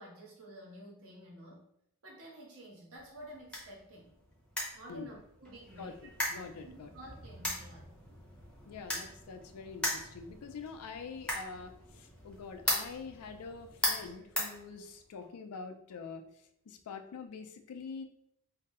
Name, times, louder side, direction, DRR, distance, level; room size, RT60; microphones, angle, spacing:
voice 1, 0.0-1.7 2.0-4.1 4.7-6.1 6.6-7.9, right 1 dB, 70° right, -4 dB, 1.0 m, -51 dB
sound 1, 3.0-15.2, left 1 dB, 5° left, 0.6 m, -39 dB
voice 2, 6.3-6.9 8.7-16.2 16.7-18.0, left 5 dB, 80° left, 7 dB, 0.4 m, -45 dB
2.6 x 2.0 x 3.5 m, 0.74 s
head